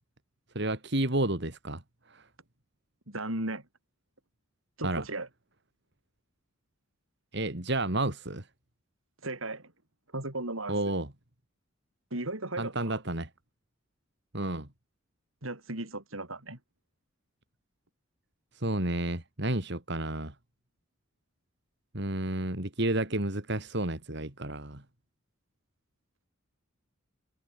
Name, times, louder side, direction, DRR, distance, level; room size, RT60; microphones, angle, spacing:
voice 1, 0.5-1.8 2.1-2.2 4.8-5.0 7.3-8.5 10.7-11.1 12.6-13.3 14.3-14.7 18.6-20.3 21.9-24.8, right 1 dB, 55° right, 3.1 m, -31 dB
voice 2, 3.1-3.7 4.8-5.3 9.2-9.7 10.1-10.8 12.1-13.0 15.4-16.6, right 2 dB, 80° right, 5.3 m, -36 dB
head